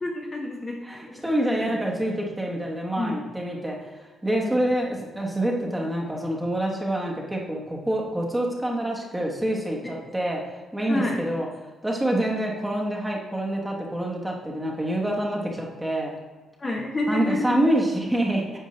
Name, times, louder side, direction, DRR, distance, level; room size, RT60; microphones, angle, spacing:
voice 1, 0.0-1.7 3.0-3.2 4.4-4.7 9.8-9.9 10.9-11.2 16.6-17.6, left 2 dB, 25° left, -1 dB, 0.8 m, -29 dB
voice 2, 0.8-3.8 4.2-10.4 10.7-11.5 11.8-16.1 17.1-18.6, right 1 dB, 10° right, -1 dB, 1.1 m, -26 dB
9.2 x 5.4 x 3.2 m, 1.3 s
cardioid pair, 150°, 0 cm